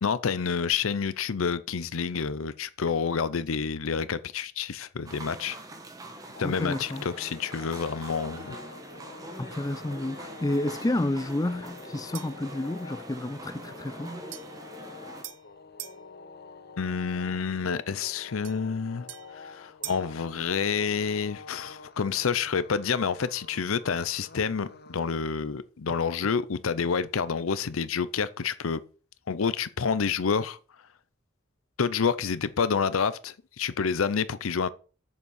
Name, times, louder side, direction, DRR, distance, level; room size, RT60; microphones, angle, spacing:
voice 1, 0.0-5.6 6.4-8.6 16.8-19.1 19.3-28.8 29.3-30.6 31.8-34.7, left 6 dB, 90° left, 0.6 m, -28 dB
sound 1, 5.1-15.2, right 1 dB, 15° right, 1.3 m, -43 dB
sound 2, 6.3-25.2, left 4 dB, 50° left, 0.9 m, -47 dB
voice 2, 6.4-7.0 9.4-14.1, left 1 dB, 20° left, 0.4 m, -30 dB
sound 3, 12.1-12.5 14.3-16.0 18.4-20.2, right 14 dB, 65° right, 0.8 m, -44 dB
8.1 x 7.1 x 6.4 m
head